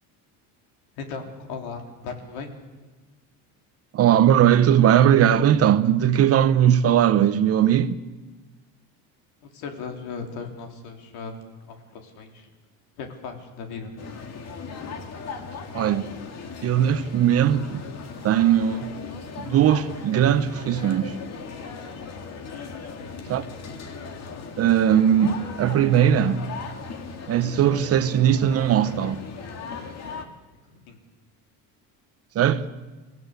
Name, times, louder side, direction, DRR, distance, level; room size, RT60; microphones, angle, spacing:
voice 1, 1.0-2.5 9.4-11.4 11.6-12.5 13.0-13.9 22.9-23.1 30.7-31.0, left 5 dB, 70° left, 3.7 m, -37 dB
voice 2, 3.9-8.0 15.7-16.1 16.6-17.8 18.2-18.9 19.4-21.1 23.3-23.4 24.6-26.5 27.3-29.2 32.3-32.6, right 10 dB, 40° right, 0.9 m, -19 dB
sound 1, 14.0-30.2, left 5 dB, 40° left, 2.2 m, -38 dB
28.5 x 15.0 x 8.3 m
cardioid pair, 155°, 39 cm